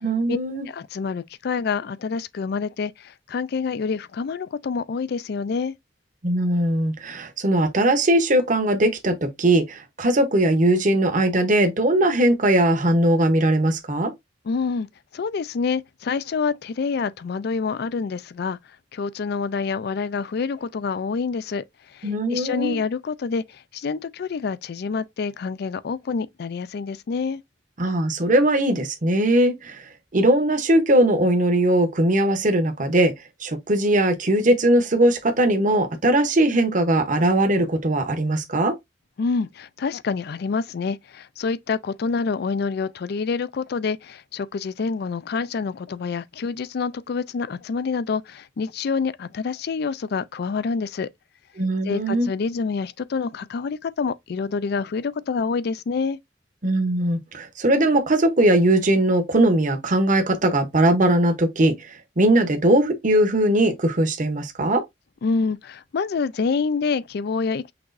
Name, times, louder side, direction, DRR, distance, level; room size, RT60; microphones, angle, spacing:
voice 1, 0.0-0.6 6.2-14.1 22.0-22.8 27.8-33.1 33.4-38.7 51.6-52.3 56.6-64.8, right 1 dB, 45° right, 0.9 m, -20 dB
voice 2, 0.7-5.8 14.5-14.9 15.1-18.6 18.9-27.4 39.2-51.1 51.9-56.2 65.2-67.7, left 5 dB, 60° left, 0.4 m, -27 dB
6.0 x 3.0 x 2.6 m
head